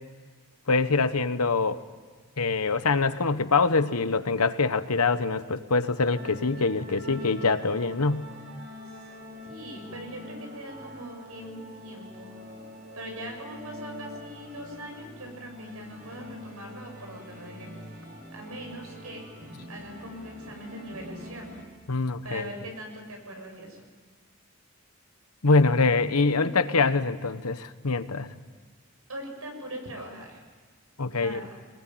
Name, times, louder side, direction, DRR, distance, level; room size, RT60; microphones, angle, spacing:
voice 1, 0.7-1.8 2.4-8.3 21.9-22.4 25.4-28.3 31.0-31.4, left 3 dB, 90° left, 12 dB, 1.1 m, -24 dB
sound 1, 6.1-21.6, left 1 dB, 40° right, 5.7 m, -44 dB
voice 2, 9.4-12.3 12.9-19.2 19.7-21.6 22.2-23.8 26.3-26.5 29.1-30.4 31.1-31.5, right 1 dB, 80° right, 3 dB, 6.8 m, -41 dB
24.5 x 20.5 x 9.3 m, 1.5 s
head